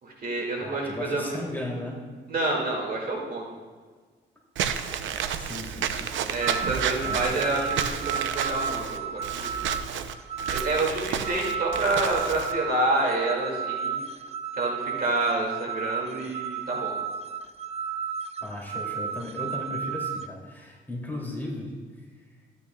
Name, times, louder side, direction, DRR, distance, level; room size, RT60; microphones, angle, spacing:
voice 1, 0.0-1.4 2.3-3.4 6.3-9.5 10.5-14.0 14.6-17.0, right 2 dB, 45° right, -2 dB, 2.3 m, -28 dB
voice 2, 0.6-2.0 5.4-6.0 6.5-6.7 7.0-7.4 18.4-21.7, left 1 dB, 10° left, -3 dB, 2.7 m, -36 dB
Walk footsteps / Squeak, 4.6-12.5, right 8 dB, 75° right, 0.6 m, -31 dB
sound 1, 6.4-20.3, right 7 dB, 30° right, 0.5 m, -33 dB
13.5 x 9.5 x 2.3 m, 1.5 s
cardioid pair, 90°, 20 cm